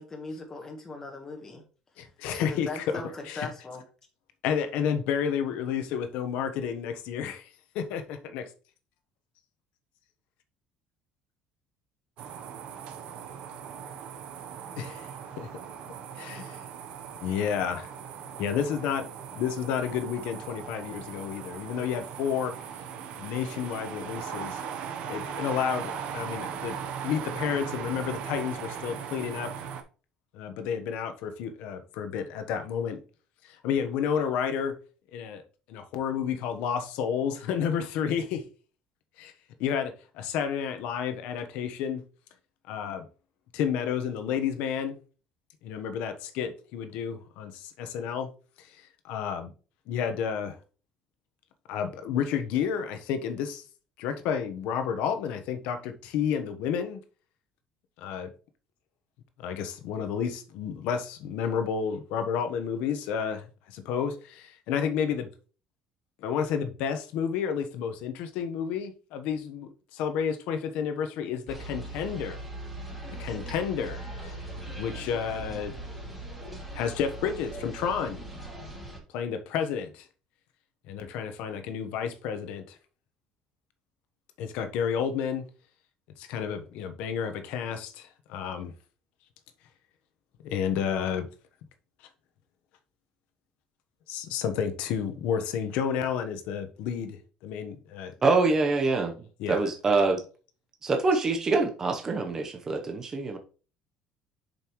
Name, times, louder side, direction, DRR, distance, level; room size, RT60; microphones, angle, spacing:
voice 1, 0.0-1.6 2.0-3.8, left 3 dB, 20° left, 1.4 m, -39 dB
voice 2, 2.0-3.0 3.3-3.5 4.4-7.5 7.7-8.5 14.8-15.1 15.4-15.5 16.1-16.6 17.2-17.9 18.4-22.5 23.2-24.6 25.1-26.8 27.0-29.5 30.3-33.0 33.4-34.8 35.1-35.4 35.7-38.4 39.2-39.3 39.6-42.0 42.7-43.1 43.5-45.0 45.6-48.3 48.6-49.5 49.9-50.6 51.7-53.6 54.0-57.0 58.0-58.3 59.4-65.3 66.2-72.4 73.1-74.3 74.8-75.7 76.7-78.2 79.1-80.1 80.9-82.8 84.4-85.4 86.2-88.7 90.4-91.3 94.1-98.1 99.4-99.7, left 7 dB, 75° left, 1.1 m, -31 dB
sound 1, 12.2-29.8, right 8 dB, 60° right, 0.9 m, -39 dB
sound 2, 71.5-79.0, right 1 dB, 5° right, 3.2 m, -40 dB
voice 3, 98.2-99.1 99.5-100.2 100.8-103.4, right 3 dB, 25° right, 0.9 m, -25 dB
7.3 x 5.3 x 3.1 m
cardioid pair, 140°, 2 cm